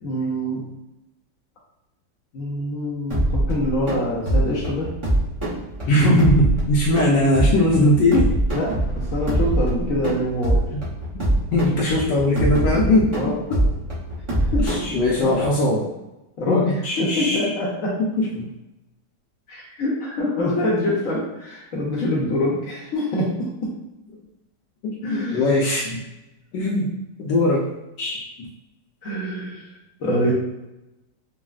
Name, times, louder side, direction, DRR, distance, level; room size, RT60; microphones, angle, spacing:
voice 1, 0.0-0.6 2.3-4.9 8.5-10.6 13.1-13.4 14.5-14.6 15.1-15.3 16.4-18.0 19.5-23.5 25.0-25.5 29.0-29.7 30.0-30.3, left 1 dB, 60° left, -5 dB, 0.9 m, -25 dB
sound 1, 3.1-15.4, right 1 dB, 30° right, 0.5 m, -24 dB
voice 2, 5.9-8.3 11.1-11.2 11.5-13.1 14.6-15.9 16.5-17.5 18.4-18.5 25.0-26.0 26.5-26.9 27.2-27.7 28.0-28.3, left 1 dB, 75° left, -4 dB, 1.2 m, -19 dB
4.0 x 2.0 x 2.3 m, 0.95 s
omnidirectional pair, 2.0 m